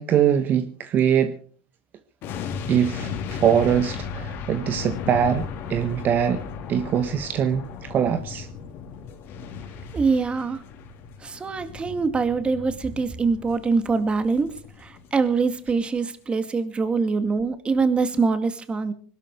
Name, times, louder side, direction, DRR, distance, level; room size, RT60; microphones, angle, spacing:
voice 1, 0.0-1.3 2.7-6.4 6.7-8.5, right 8 dB, 45° right, 1.5 m, -22 dB
sound 1, 2.2-15.4 15.6-15.8, left 6 dB, 55° left, 3.5 m, -36 dB
voice 2, 9.9-10.6 11.2-14.5 14.8-18.9, right 4 dB, 25° right, 2.2 m, -24 dB
21.5 x 12.5 x 4.8 m
supercardioid pair, 105°, 5 cm